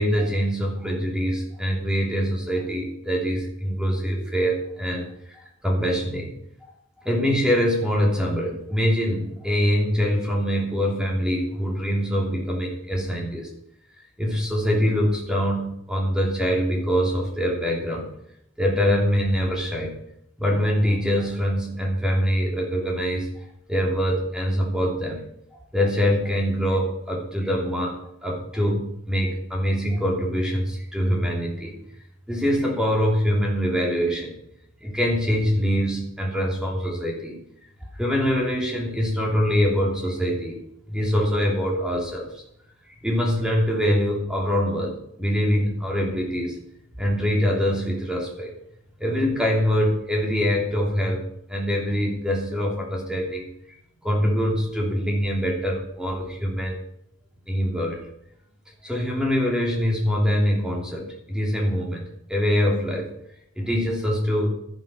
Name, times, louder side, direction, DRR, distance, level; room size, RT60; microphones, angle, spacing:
voice 1, 0.0-6.3 7.0-13.5 14.2-18.1 18.6-19.9 20.4-23.3 23.7-25.2 25.7-27.9 28.2-31.7 32.3-34.3 34.8-37.4 38.0-40.6 40.9-42.4 43.0-46.6 47.0-48.5 49.0-51.2 51.5-53.5 54.0-56.8 57.5-58.0 58.8-63.1 63.6-64.5, equal, 5° right, -1 dB, 3.2 m, -24 dB
12.5 x 11.0 x 6.1 m, 0.75 s
head